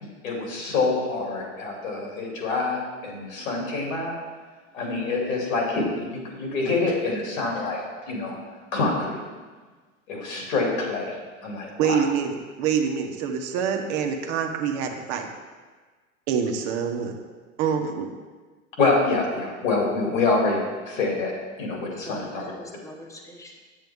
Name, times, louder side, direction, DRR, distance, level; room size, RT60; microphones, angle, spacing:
voice 1, 0.0-4.1 4.7-8.4 8.7-9.2 10.1-11.2 11.4-12.0 18.8-20.6 20.9-21.3 21.6-22.5, left 3 dB, 70° left, -1 dB, 2.8 m, -26 dB
voice 2, 11.8-15.3 16.3-17.1 17.6-18.1, right 7 dB, 50° right, 4 dB, 1.2 m, -26 dB
voice 3, 21.7-23.6, equal, 10° left, 0 dB, 1.2 m, -42 dB
9.0 x 7.6 x 3.6 m, 1.4 s
hypercardioid pair, 90°, 41 cm